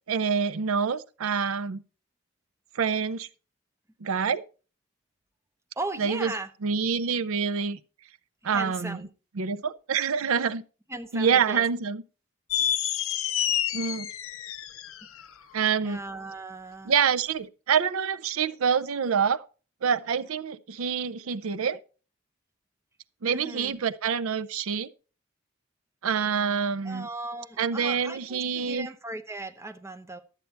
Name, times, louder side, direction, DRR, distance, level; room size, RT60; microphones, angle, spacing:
voice 1, 0.1-1.8 2.7-3.3 4.0-4.4 6.0-6.3 6.6-7.8 8.4-9.0 9.4-10.6 11.1-12.0 13.7-14.1 15.5-16.0 16.9-19.4 19.8-21.8 23.2-24.9 26.0-27.1 27.6-28.9, right 6 dB, 75° right, 0.5 m, -26 dB
voice 2, 5.8-6.5 8.4-9.1 10.9-11.6 12.6-12.7 15.8-16.9 23.2-23.8 26.8-30.2, right 2 dB, 10° right, 0.7 m, -37 dB
sound 1, 12.5-15.2, left 10 dB, 70° left, 0.7 m, -28 dB
12.5 x 8.2 x 4.4 m
head